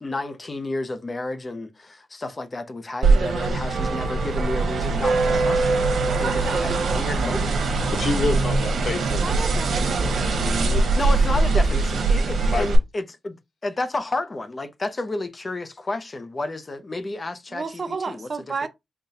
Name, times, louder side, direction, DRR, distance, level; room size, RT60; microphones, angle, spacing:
voice 1, 0.0-7.8 11.0-13.4 13.6-18.3, left 2 dB, 25° left, 0.5 m, -31 dB
sound 1, 3.0-12.8, right 3 dB, 85° right, 0.9 m, -22 dB
voice 2, 7.9-9.4 10.6-10.9 12.4-12.7, left 3 dB, 60° left, 1.0 m, -28 dB
voice 3, 9.2-10.4 17.5-18.7, right 4 dB, 40° right, 0.5 m, -32 dB
3.9 x 2.2 x 4.0 m
wide cardioid pair, 145°, 0 cm